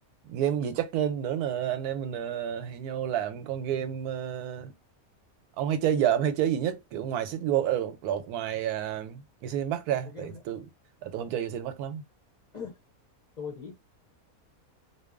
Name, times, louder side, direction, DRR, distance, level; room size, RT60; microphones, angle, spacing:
voice 1, 0.3-4.7 5.6-10.7 11.0-12.0, right 10 dB, 90° right, 1.1 m, -29 dB
voice 2, 10.1-10.4 12.5-12.7 13.4-13.8, left 6 dB, 45° left, 0.5 m, -39 dB
2.7 x 2.2 x 2.4 m
omnidirectional pair, 1.6 m